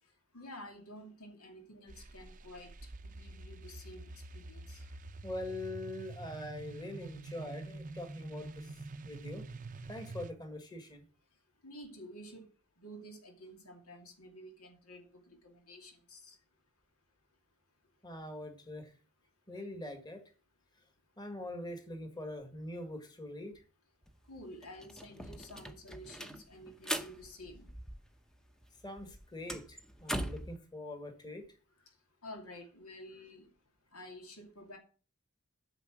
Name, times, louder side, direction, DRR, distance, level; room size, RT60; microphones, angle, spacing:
voice 1, 0.3-4.9 11.6-12.5 12.8-16.4 24.3-27.7 32.2-33.5 33.9-34.8, left 1 dB, 80° left, 2.5 m, -51 dB
sound 1, 1.9-10.3, right 3 dB, 35° right, 0.6 m, -47 dB
voice 2, 5.2-8.7 9.0-9.4 9.9-11.1 18.0-18.9 19.5-20.2 21.2-23.5 28.8-31.5, left 1 dB, 20° left, 1.8 m, -43 dB
sound 2, 24.1-24.2 24.4-28.4 28.6-30.6, equal, 5° left, 0.7 m, -41 dB
9.1 x 6.8 x 6.2 m
head